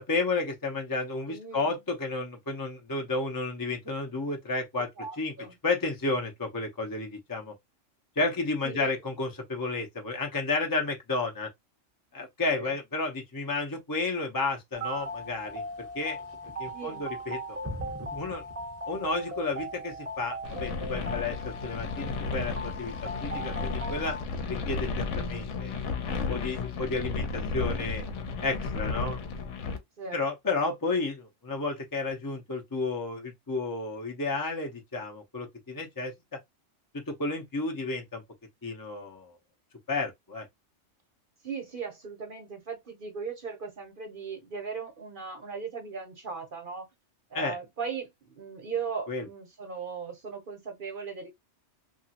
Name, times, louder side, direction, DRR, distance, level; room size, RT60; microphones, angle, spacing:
voice 1, 0.0-4.9 5.2-5.3 5.6-7.5 8.2-11.5 12.1-15.6 15.9-16.2 16.6-17.6 18.1-18.4 18.9-22.9 23.2-24.2 24.5-25.7 26.3-28.0 28.4-29.2 30.1-36.1 37.1-38.2 38.6-39.3 39.9-40.5 47.3-47.5 49.1-49.2, left 3 dB, 25° left, 0.4 m, -32 dB
voice 2, 1.3-1.8 5.0-5.6 8.6-8.9 12.5-12.8 16.7-17.1 27.5-27.8 30.0-30.2 41.4-46.9 47.3-51.3, right 5 dB, 50° right, 0.9 m, -38 dB
sound 1, 14.7-24.2, equal, 15° right, 0.6 m, -38 dB
sound 2, 20.4-29.8, left 4 dB, 75° left, 1.0 m, -33 dB
2.9 x 2.4 x 2.7 m
omnidirectional pair, 1.3 m